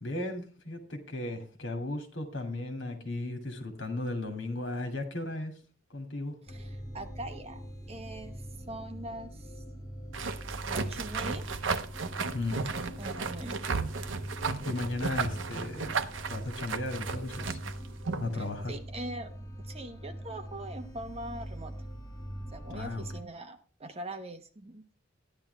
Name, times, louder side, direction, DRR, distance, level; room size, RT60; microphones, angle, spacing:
voice 1, 0.0-5.5 5.9-6.4 12.3-12.7 14.6-17.6 18.2-18.7 22.7-23.0, left 2 dB, 65° left, 5 dB, 2.7 m, -35 dB
sound 1, 6.5-23.2, equal, 20° left, 1.6 m, -43 dB
voice 2, 6.5-7.6 7.9-9.6 10.7-11.5 12.5-12.6 13.0-13.6 18.3-19.3 19.6-21.7 22.5-24.8, right 1 dB, 30° right, 6 dB, 1.2 m, -42 dB
sound 2, 10.1-18.3, right 4 dB, 65° right, 0.9 m, -34 dB
13.5 x 10.5 x 3.4 m, 0.36 s
head